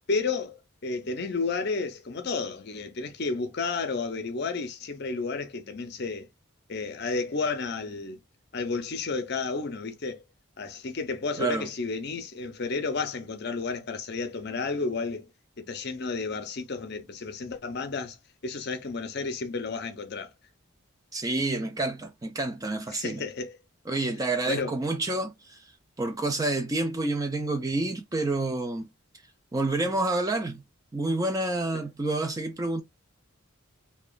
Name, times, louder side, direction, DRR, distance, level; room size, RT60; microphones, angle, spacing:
voice 1, 0.1-6.3 6.7-8.2 8.5-10.2 10.6-15.3 15.6-18.2 18.4-20.3 22.9-23.5 24.5-24.8, left 4 dB, 50° left, 0.6 m, -32 dB
voice 2, 11.4-11.7 21.1-23.2 23.9-25.6 26.0-28.9 29.5-30.6 30.9-32.8, right 2 dB, 15° right, 0.3 m, -28 dB
2.9 x 2.2 x 2.2 m
head